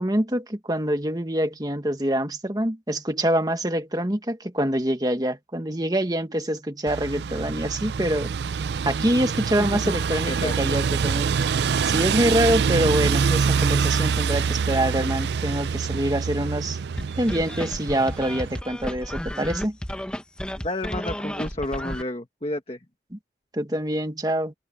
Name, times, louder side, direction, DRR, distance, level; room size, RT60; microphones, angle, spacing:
voice 1, 0.0-8.3 8.8-11.4 11.8-16.8 17.2-19.8 23.5-24.5, right 1 dB, 20° right, 1.6 m, -25 dB
sound 1, 6.9-18.6, right 6 dB, 70° right, 0.4 m, -25 dB
voice 2, 9.6-9.9 10.3-10.6 20.5-22.8, left 1 dB, 30° left, 1.7 m, -31 dB
sound 2, 17.0-22.0, equal, 5° left, 1.1 m, -33 dB
head